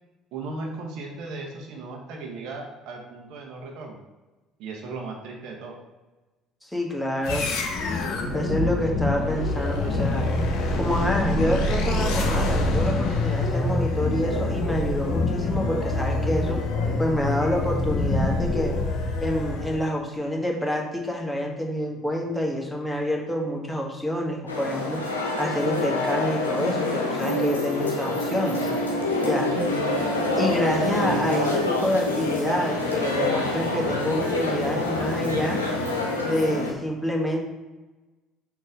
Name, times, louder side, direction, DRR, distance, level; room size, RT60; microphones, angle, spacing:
voice 1, 0.3-4.0 4.6-5.8, right 3 dB, 60° right, 1 dB, 1.1 m, -36 dB
voice 2, 6.6-7.5 8.3-10.3 10.8-16.6 17.0-18.8 19.2-25.0 25.4-28.7 29.2-29.5 30.3-35.6 36.2-37.4, equal, 5° left, -1 dB, 1.6 m, -27 dB
sound 1, 7.2-19.9, left 2 dB, 60° left, 1.0 m, -25 dB
sound 2, 24.5-36.7, left 2 dB, 85° left, 0.7 m, -26 dB
6.3 x 3.0 x 5.1 m, 1.2 s
figure-of-eight pair, 55°, 0 cm